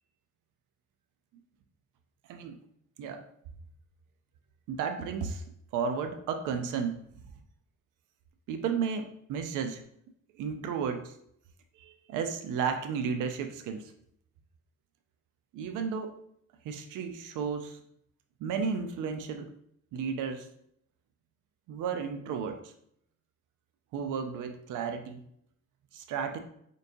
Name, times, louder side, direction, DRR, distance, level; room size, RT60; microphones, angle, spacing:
voice 1, 2.3-2.6 3.0-3.2 4.7-5.4 5.7-7.0 8.5-9.8 10.4-11.1 11.8-13.9 15.5-16.2 16.6-17.8 18.4-19.5 19.9-20.5 21.7-22.7 23.9-25.2 25.9-26.4, right 6 dB, 85° right, 7 dB, 0.5 m, -33 dB
4.3 x 3.1 x 2.7 m, 0.70 s
cardioid pair, 90°, 30 cm